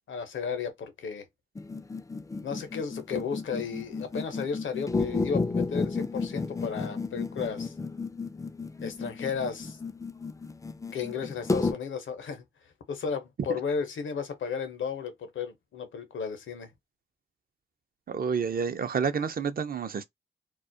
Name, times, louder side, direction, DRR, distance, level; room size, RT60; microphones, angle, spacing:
voice 1, 0.1-1.3 2.4-7.7 8.8-9.8 10.9-12.4 12.9-16.7, left 6 dB, 80° left, 0.7 m, -34 dB
sound 1, 1.6-11.7, left 4 dB, 15° left, 0.3 m, -32 dB
voice 2, 18.1-20.1, right 6 dB, 50° right, 0.5 m, -29 dB
2.3 x 2.0 x 2.6 m
supercardioid pair, 45°, 20 cm